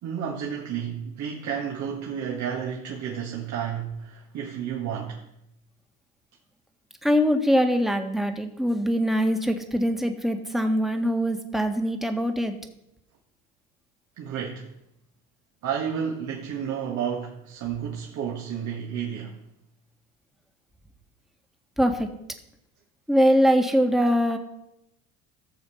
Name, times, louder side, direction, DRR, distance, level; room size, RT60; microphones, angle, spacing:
voice 1, 0.0-5.2 14.2-14.7 15.6-19.4, right 8 dB, 60° right, 1.9 m, -31 dB
voice 2, 7.0-12.5 21.8-22.1 23.1-24.4, equal, ahead, 1.7 m, -22 dB
15.0 x 7.0 x 5.7 m
supercardioid pair, 80°, 33 cm